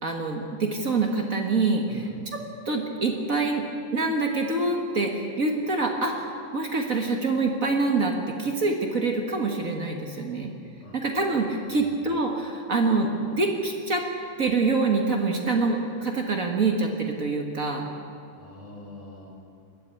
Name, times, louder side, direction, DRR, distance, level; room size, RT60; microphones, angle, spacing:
voice 1, 0.0-2.0 2.3-2.4 2.6-3.6 3.9-10.5 10.9-14.0 14.4-17.9, right 3 dB, 55° right, 2 dB, 0.9 m, -25 dB
voice 2, 1.8-2.3 10.8-11.0 11.6-12.0 18.3-19.3, left 1 dB, 20° left, -3 dB, 5.0 m, -44 dB
21.5 x 14.0 x 9.1 m, 2.5 s
omnidirectional pair, 4.1 m